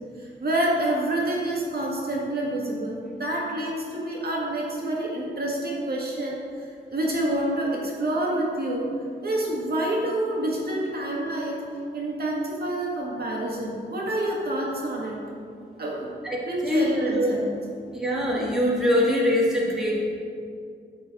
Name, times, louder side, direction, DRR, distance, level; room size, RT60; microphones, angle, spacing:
voice 1, 0.2-6.7 6.9-8.9 9.2-11.6 11.9-15.2 15.8-16.1 16.5-17.5, right 1 dB, 55° right, -3 dB, 1.9 m, -27 dB
voice 2, 16.2-17.3 17.9-20.0, left 1 dB, 5° right, -5 dB, 1.8 m, -23 dB
13.0 x 4.5 x 4.0 m, 2.4 s
wide cardioid pair, 115°, 20 cm